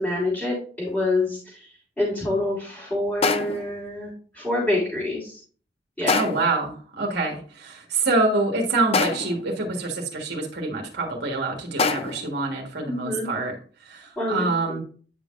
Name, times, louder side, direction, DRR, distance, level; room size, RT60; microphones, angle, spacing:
voice 1, 0.0-1.6 2.0-5.4 6.0-6.3 12.8-13.3 14.2-14.4, left 2 dB, 5° left, -8 dB, 3.3 m, -26 dB
sound 1, 0.9-1.0 3.2-3.8 6.1-6.6 8.9-9.5 11.8-12.4, left 4 dB, 35° left, 0.5 m, -25 dB
voice 2, 6.1-13.6 13.8-14.8, right 3 dB, 65° right, 0 dB, 1.5 m, -26 dB
9.5 x 5.6 x 2.5 m, 0.42 s
head